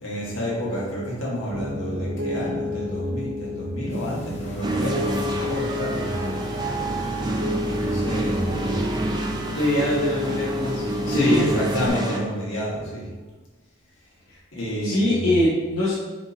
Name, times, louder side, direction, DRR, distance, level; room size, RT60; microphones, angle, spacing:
voice 1, 0.0-6.6 7.4-8.8 11.1-13.1 14.5-15.3, equal, 70° left, -5 dB, 1.5 m, -29 dB
Piano, 1.5-11.9, left 1 dB, 65° right, 0.6 m, -31 dB
sound 1, 3.9-12.0, left 1 dB, 30° left, 0.7 m, -44 dB
sound 2, 4.6-12.2, right 2 dB, 20° right, 0.4 m, -28 dB
voice 2, 9.5-11.4 14.3-14.4 14.8-15.9, left 1 dB, 85° left, -8 dB, 0.9 m, -23 dB
4.5 x 4.1 x 2.8 m, 1.3 s
head